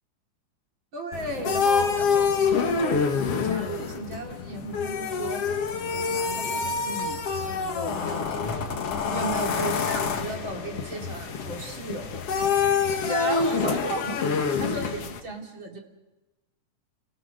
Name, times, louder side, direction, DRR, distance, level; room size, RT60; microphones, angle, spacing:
voice 1, 0.9-2.3 2.6-5.4 6.3-8.8 9.1-12.1 13.0-15.8, right 2 dB, 40° right, 2 dB, 3.4 m, -35 dB
sound 1, 1.1-15.2, left 5 dB, 55° left, 2.3 m, -27 dB
29.0 x 24.0 x 6.7 m, 1.1 s
omnidirectional pair, 3.7 m